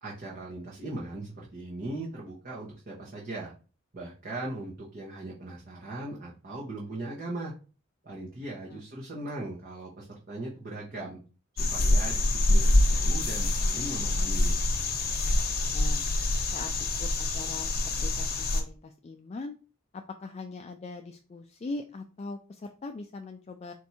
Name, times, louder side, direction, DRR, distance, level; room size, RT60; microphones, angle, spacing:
voice 1, 0.0-3.5 3.9-7.5 8.0-11.2 11.5-14.5, right 2 dB, 45° right, -4 dB, 1.0 m, -39 dB
sound 1, 11.6-18.6, left 1 dB, 50° left, 0.8 m, -26 dB
voice 2, 15.7-16.1 16.5-17.1 17.3-19.6 19.9-23.7, left 3 dB, 30° left, 5 dB, 0.3 m, -41 dB
4.5 x 2.6 x 4.1 m, 0.36 s
head